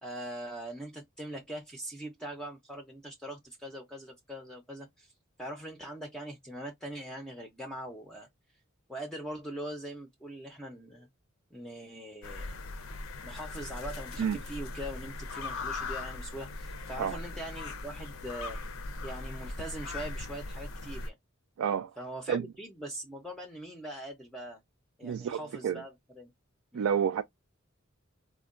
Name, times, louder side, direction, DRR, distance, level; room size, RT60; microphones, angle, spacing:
voice 1, 0.0-5.1 5.4-8.3 8.9-11.1 11.5-12.6 13.2-18.6 19.0-21.1 22.0-24.6 25.0-26.3 26.7-26.9, right 1 dB, 5° left, 0.5 m, -42 dB
sound 1, 12.2-21.1, left 3 dB, 75° left, 0.5 m, -39 dB
voice 2, 21.6-21.9 22.3-22.4 25.0-25.8 26.7-27.2, right 7 dB, 90° right, 0.3 m, -29 dB
3.6 x 2.1 x 2.4 m
head